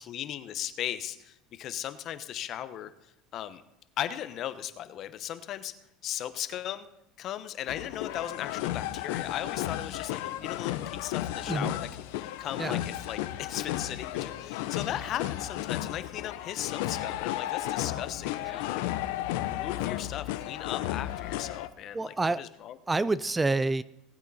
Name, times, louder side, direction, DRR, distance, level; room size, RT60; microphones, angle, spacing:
voice 1, 0.0-2.9 3.3-3.6 4.0-5.7 6.0-6.9 7.2-11.9 12.2-18.8 19.4-22.7, left 11 dB, 50° left, 11 dB, 1.1 m, -37 dB
sound 1, 7.7-21.7, left 14 dB, 75° left, 0.7 m, -33 dB
voice 2, 21.9-22.4 22.9-23.8, right 3 dB, 15° right, 17 dB, 0.4 m, -28 dB
19.0 x 8.3 x 4.2 m, 0.85 s
supercardioid pair, 95°, 0 cm